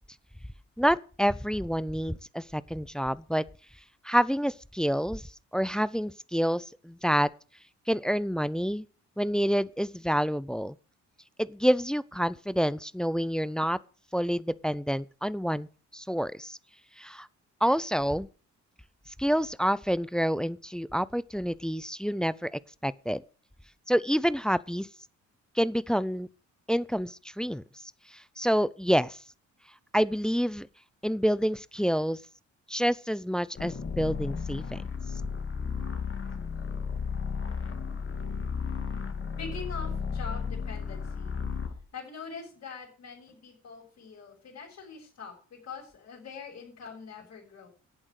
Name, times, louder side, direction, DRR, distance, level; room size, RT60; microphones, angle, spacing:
voice 1, 0.8-3.4 4.0-5.2 5.5-7.3 7.9-8.9 9.2-10.7 11.4-13.8 14.1-15.7 15.9-16.6 17.0-17.3 17.6-18.3 19.2-23.2 23.9-24.9 25.6-26.3 26.7-27.6 28.4-29.2 29.9-30.7 31.0-32.2 32.7-34.8, equal, ahead, 0.5 m, -28 dB
sound 1, 33.6-41.8, left 5 dB, 40° left, 2.3 m, -34 dB
voice 2, 39.4-41.4 41.9-47.7, left 5 dB, 60° left, 6.5 m, -43 dB
11.0 x 8.7 x 6.5 m
cardioid pair, 90°, 30 cm